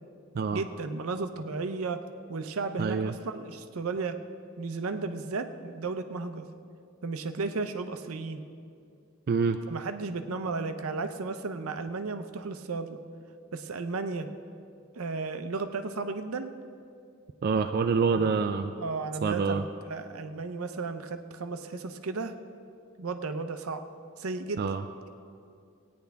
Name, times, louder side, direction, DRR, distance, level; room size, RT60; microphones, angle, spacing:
voice 1, 0.5-2.0 2.3-4.2 4.6-6.5 7.0-8.4 9.7-13.0 13.5-14.3 14.9-16.5 18.1-18.4 18.8-22.3 23.0-23.8 24.2-24.6, right 4 dB, 80° right, 9 dB, 0.6 m, -34 dB
voice 2, 2.8-3.1 9.3-9.6 17.4-18.7 19.2-19.6 24.6-24.8, right 5 dB, 45° right, 7 dB, 0.3 m, -26 dB
17.5 x 9.5 x 3.4 m, 2.4 s
head